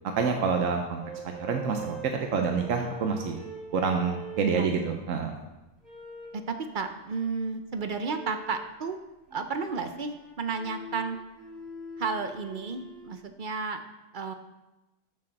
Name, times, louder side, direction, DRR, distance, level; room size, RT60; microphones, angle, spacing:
voice 1, 0.1-1.0 1.5-3.4 3.7-5.4, right 5 dB, 90° right, 4 dB, 1.2 m, -27 dB
sound 1, 1.0-5.2 5.8-6.4 8.0-8.7 9.3-13.2, right 2 dB, 25° right, 2.8 m, -43 dB
voice 2, 4.6-5.0 6.3-9.0 9.3-11.2 12.0-13.8 14.1-14.3, right 4 dB, 45° right, 8 dB, 0.8 m, -32 dB
7.1 x 6.8 x 6.5 m, 1.0 s
omnidirectional pair, 1.3 m